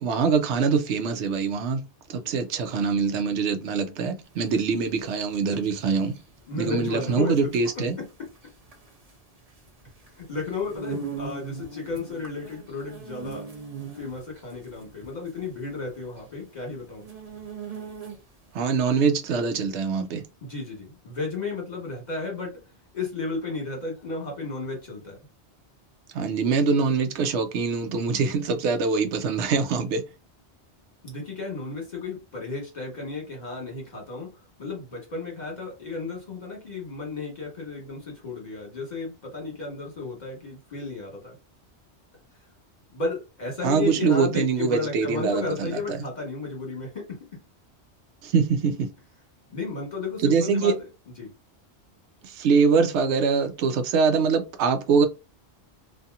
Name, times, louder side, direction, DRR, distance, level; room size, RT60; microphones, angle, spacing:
voice 1, 0.0-1.8 2.1-6.2 6.6-8.0 18.5-20.2 26.1-30.0 43.6-46.0 48.2-48.9 50.2-50.7 52.2-55.1, right 5 dB, 80° right, 0.9 m, -23 dB
sound 1, 4.3-18.5, right 5 dB, 40° right, 0.8 m, -41 dB
voice 2, 6.5-8.0 10.1-13.5 13.8-17.1 20.4-22.6 22.9-25.2 31.0-34.3 34.6-41.4 42.9-47.2 49.5-50.9 51.2-51.3, left 3 dB, 40° left, 1.3 m, -33 dB
2.7 x 2.5 x 2.3 m
omnidirectional pair, 1.1 m